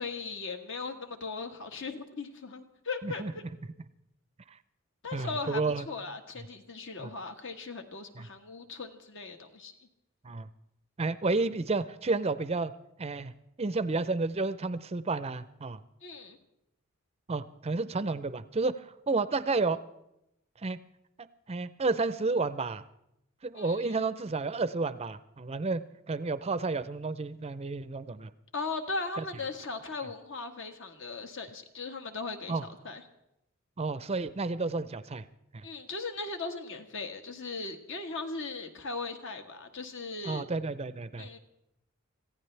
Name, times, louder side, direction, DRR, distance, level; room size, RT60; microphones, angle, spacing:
voice 1, 0.0-3.5 5.0-5.6 5.9-9.7 16.0-16.4 23.5-24.0 28.5-32.6 32.8-33.0 35.6-40.4 41.2-41.4, left 3 dB, 55° left, 6 dB, 1.5 m, -38 dB
voice 2, 5.1-5.9 7.0-7.1 8.2-8.3 10.2-10.5 11.0-12.7 13.0-13.3 13.6-15.8 17.3-19.8 20.6-20.8 21.2-22.8 23.4-25.8 26.1-28.3 29.2-29.3 32.5-32.6 33.8-35.3 35.5-35.7 40.2-41.4, right 3 dB, 30° right, 14 dB, 0.5 m, -31 dB
25.0 x 15.5 x 3.3 m, 0.84 s
head